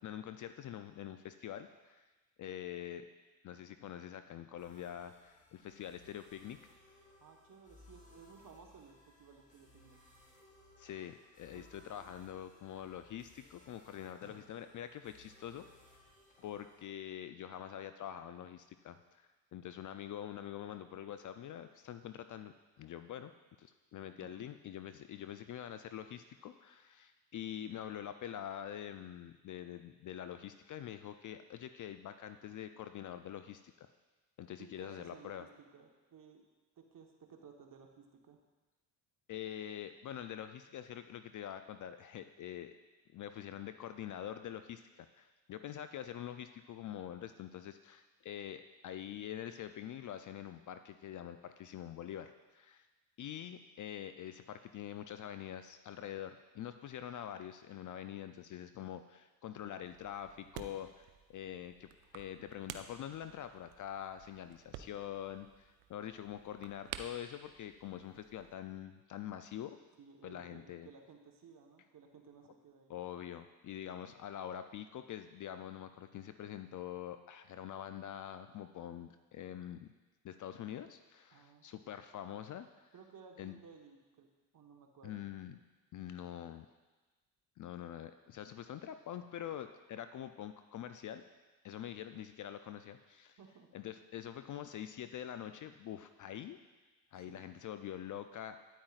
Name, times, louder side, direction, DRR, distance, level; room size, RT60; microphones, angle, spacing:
voice 1, 0.0-2.1 2.4-3.1 3.4-6.6 10.8-15.6 16.4-23.3 23.6-33.9 34.4-35.5 39.3-42.7 43.1-52.9 53.2-69.8 70.2-70.9 72.9-79.8 80.2-82.9 83.4-83.5 85.0-85.6 85.9-86.7 87.6-91.2 91.6-93.4 93.7-96.6 97.1-98.6, left 10 dB, 45° left, 10 dB, 0.4 m, -45 dB
sound 1, 4.6-16.9, left 1 dB, 15° left, 1.5 m, -63 dB
voice 2, 7.2-10.0 11.5-11.7 24.2-24.5 34.6-36.4 36.8-38.4 70.0-72.9 81.3-81.7 82.9-84.3 84.5-85.3 93.4-93.7 97.2-97.5, right 6 dB, 45° right, 2 dB, 1.3 m, -57 dB
sound 2, 14.2-15.3 15.6-17.9 18.3-19.2, left 1 dB, 85° left, 2.4 m, -66 dB
sound 3, 59.8-68.6, right 10 dB, 80° right, 0.6 m, -52 dB
9.3 x 8.7 x 2.4 m, 1.2 s
supercardioid pair, 65°, 47 cm